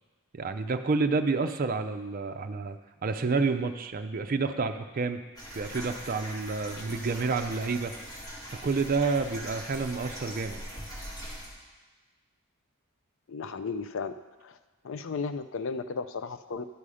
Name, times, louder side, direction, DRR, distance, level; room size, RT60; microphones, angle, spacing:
voice 1, 0.3-5.2 5.5-7.9 8.6-10.6, right 4 dB, 40° right, 7 dB, 0.5 m, -29 dB
sound 1, 5.4-11.5, equal, 15° left, 2.1 m, -41 dB
voice 2, 13.3-14.1 14.4-14.6 14.8-16.6, left 4 dB, 60° left, 11 dB, 0.4 m, -34 dB
11.5 x 5.5 x 4.9 m, 1.3 s
head